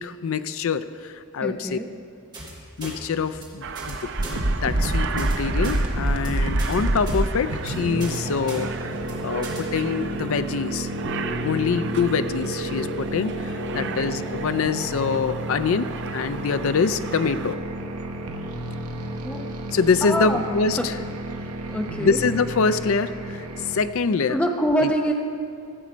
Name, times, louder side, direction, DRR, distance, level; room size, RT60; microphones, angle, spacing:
voice 1, 0.0-1.8 2.8-8.9 9.2-10.9 11.4-17.6 19.7-21.0 22.0-24.4 24.8-24.9, left 5 dB, 65° left, 13 dB, 0.4 m, -25 dB
voice 2, 1.4-1.9 13.7-14.0 19.2-19.5 20.0-20.5 20.8-20.9 21.7-22.2 24.3-25.1, equal, 5° left, 1 dB, 0.8 m, -25 dB
sound 1, 2.3-2.5 2.8-2.9 3.3-3.4 3.8-3.9 4.2-4.4 4.7-4.9 5.2-5.3 5.6-5.8 6.1-6.3 6.6-6.8 7.1-7.2 7.5-7.7 8.0-8.2 8.5-8.6 8.9-9.1 9.4-9.6, right 2 dB, 20° right, 2.1 m, -38 dB
Aircraft, 3.6-17.5, right 5 dB, 55° right, 0.5 m, -37 dB
sound 2, 4.2-23.9, right 1 dB, 90° right, 0.9 m, -29 dB
14.5 x 7.2 x 5.1 m, 2.5 s
head